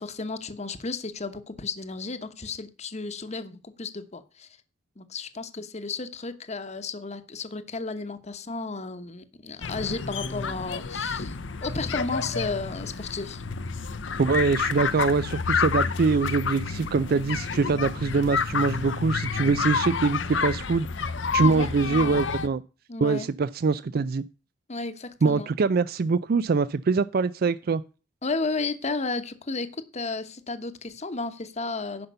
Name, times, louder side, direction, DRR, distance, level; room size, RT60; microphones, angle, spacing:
voice 1, 0.0-4.5 5.0-11.4 11.6-13.4 21.4-22.2 22.9-23.3 24.7-25.5 28.2-32.1, left 3 dB, 35° left, 11 dB, 1.0 m, -33 dB
sound 1, 9.6-22.5, left 5 dB, 75° left, 0.8 m, -29 dB
voice 2, 14.2-20.9 21.3-22.6 23.0-24.2 25.2-27.8, right 4 dB, 55° right, 15 dB, 0.4 m, -24 dB
10.5 x 5.8 x 6.7 m, 0.34 s
head